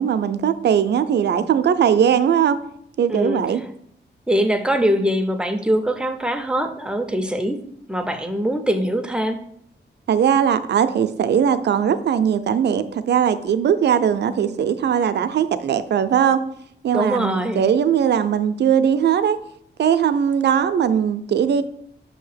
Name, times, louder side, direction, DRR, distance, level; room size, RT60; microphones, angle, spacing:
voice 1, 0.0-2.6 3.0-3.6 10.1-16.4 16.8-19.4 19.8-21.6, right 8 dB, 65° right, 11 dB, 0.4 m, -19 dB
voice 2, 3.1-3.4 4.3-7.6 7.9-9.4 16.9-17.7, equal, 5° right, 6 dB, 0.5 m, -22 dB
6.5 x 2.8 x 5.6 m, 0.68 s
wide cardioid pair, 160°, 19 cm